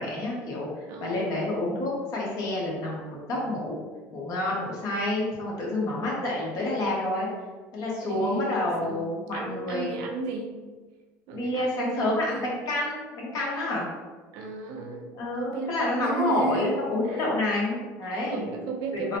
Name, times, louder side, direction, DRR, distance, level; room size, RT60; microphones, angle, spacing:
voice 1, 0.0-0.7 1.0-3.8 4.1-7.3 7.7-9.9 11.3-13.9 15.1-18.4 18.9-19.2, left 1 dB, 55° left, -4 dB, 1.2 m, -28 dB
voice 2, 0.9-1.4 8.1-10.6 11.3-12.5 14.3-15.1 15.4-17.4 18.0-19.2, right 3 dB, 80° right, 2 dB, 0.5 m, -34 dB
3.7 x 2.1 x 2.7 m, 1.3 s
supercardioid pair, 95°, 7 cm